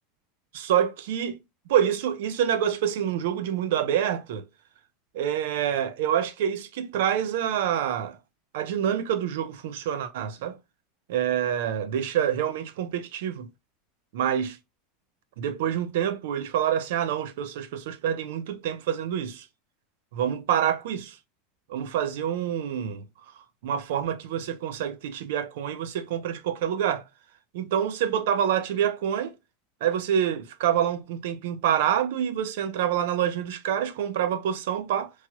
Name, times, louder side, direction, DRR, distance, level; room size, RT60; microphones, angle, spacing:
voice 1, 0.5-1.4 1.7-4.4 5.1-8.2 8.5-10.6 11.1-13.5 14.1-14.6 15.4-19.5 20.1-21.2 21.7-23.1 23.6-27.0 27.5-29.3 29.8-35.1, right 9 dB, 65° right, 0.5 m, -27 dB
3.1 x 2.9 x 2.2 m
supercardioid pair, 175°, 0 cm